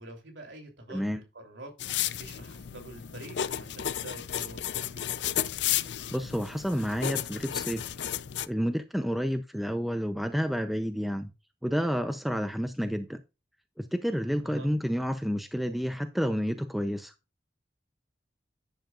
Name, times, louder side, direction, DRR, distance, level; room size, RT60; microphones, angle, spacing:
voice 1, 0.0-1.0 1.3-1.7 2.2-5.1 14.4-14.7, right 1 dB, 85° right, 3.2 m, -46 dB
voice 2, 0.9-1.2 6.1-7.9 8.5-11.3 11.6-13.2 13.8-17.1, equal, ahead, 0.5 m, -30 dB
sound 1, 1.8-8.5, left 10 dB, 75° left, 0.5 m, -33 dB
10.5 x 7.5 x 2.4 m
head